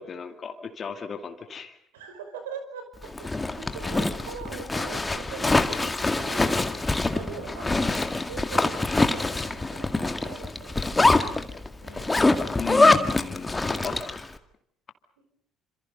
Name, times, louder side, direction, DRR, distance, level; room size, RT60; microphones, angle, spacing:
voice 1, 0.0-1.8 12.6-14.2, left 6 dB, 40° left, 6 dB, 2.4 m, -35 dB
voice 2, 1.9-6.5 7.1-8.0 8.3-11.0 11.8-12.4 13.7-13.9, right 5 dB, 75° right, 7 dB, 5.2 m, -41 dB
Zipper (clothing), 3.0-14.2, left 2 dB, 15° left, 2.0 m, -24 dB
28.5 x 27.0 x 5.4 m, 0.69 s
figure-of-eight pair, 55°, 0 cm